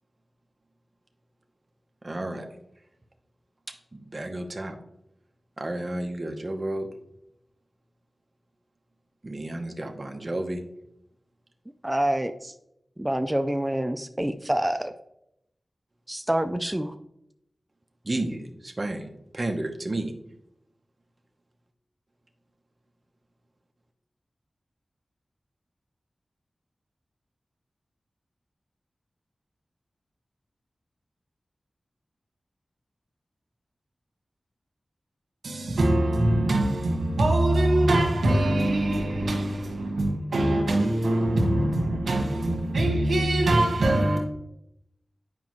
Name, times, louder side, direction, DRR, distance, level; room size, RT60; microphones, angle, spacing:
voice 1, 2.0-2.5 3.7-4.8 5.6-6.9 9.2-10.6 18.0-20.1, right 1 dB, 40° right, 1.0 m, -32 dB
voice 2, 11.8-12.5 13.0-14.9 16.1-17.0, right 1 dB, 15° right, 0.4 m, -27 dB
voice 3, 35.4-44.2, right 1 dB, 90° right, 1.5 m, -23 dB
9.4 x 5.2 x 3.1 m
cardioid pair, 50°, 0 cm